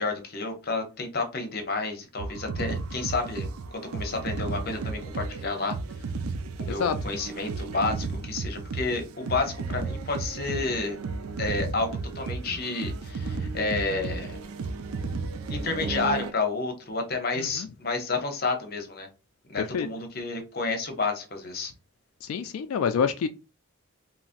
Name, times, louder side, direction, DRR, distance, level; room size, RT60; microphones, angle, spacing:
voice 1, 0.0-5.8 6.6-11.0 11.4-14.4 15.5-19.1 19.5-21.7, left 3 dB, 45° left, 0.7 m, -30 dB
sound 1, 2.2-16.3, right 4 dB, 85° right, 0.4 m, -34 dB
voice 2, 17.4-17.7 19.6-19.9 22.2-23.3, left 6 dB, 85° left, 0.3 m, -27 dB
3.8 x 2.0 x 2.5 m
head